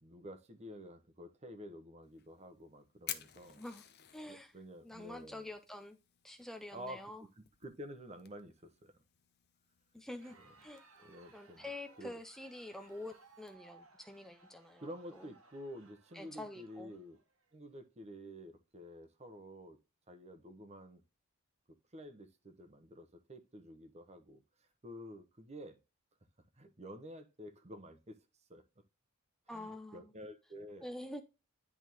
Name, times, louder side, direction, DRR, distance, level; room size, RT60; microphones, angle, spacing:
voice 1, 0.0-3.6 4.3-5.5 6.7-9.0 10.9-11.7 12.0-12.2 14.8-17.2 17.5-19.8 20.1-21.0 21.7-25.8 26.6-28.2 28.5-28.8 29.5-30.8, equal, 30° right, 1.0 m, -50 dB
Fire, 2.0-13.5, left 11 dB, 50° left, 0.7 m, -54 dB
voice 2, 3.5-3.8 4.1-4.5 4.8-6.0 6.2-7.2 9.9-10.8 11.3-14.9 15.2-15.3 16.1-16.9 29.5-30.1 30.8-31.2, left 1 dB, ahead, 0.5 m, -47 dB
Crowd, 10.0-17.5, right 3 dB, 75° right, 1.4 m, -64 dB
10.5 x 3.6 x 3.0 m
head